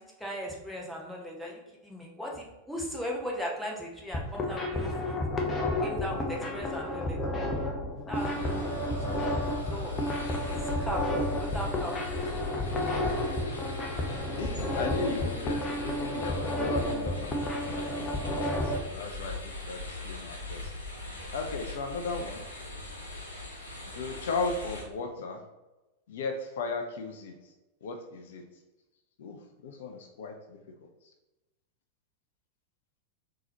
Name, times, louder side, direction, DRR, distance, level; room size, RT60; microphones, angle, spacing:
voice 1, 0.2-5.2 5.8-7.2 8.1-9.0 9.7-9.9 10.8-11.0 11.4-11.9, equal, ahead, -3 dB, 0.9 m, -37 dB
sound 1, 4.0-18.8, left 1 dB, 20° left, 0.6 m, -31 dB
sound 2, 8.1-24.8, left 2 dB, 75° left, 0.8 m, -40 dB
voice 2, 13.8-20.7 21.3-22.4 23.9-25.4 26.1-27.5 27.8-28.4 29.2-31.1, left 4 dB, 55° left, 4 dB, 0.4 m, -37 dB
3.8 x 2.8 x 2.8 m, 1.1 s
figure-of-eight pair, 90°, 0 cm